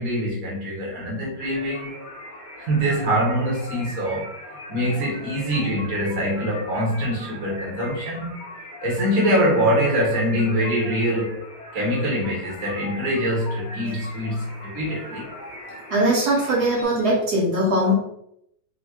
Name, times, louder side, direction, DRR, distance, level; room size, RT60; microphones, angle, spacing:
voice 1, 0.0-2.0 2.7-4.3 4.7-8.4 8.8-11.4 11.7-15.3, equal, 80° right, 0.7 m, -24 dB
sound 1, 1.4-16.8, left 1 dB, 50° left, 1.0 m, -39 dB
voice 2, 15.9-17.9, right 1 dB, 55° right, 1.1 m, -20 dB
6.1 x 2.2 x 3.0 m
omnidirectional pair, 3.5 m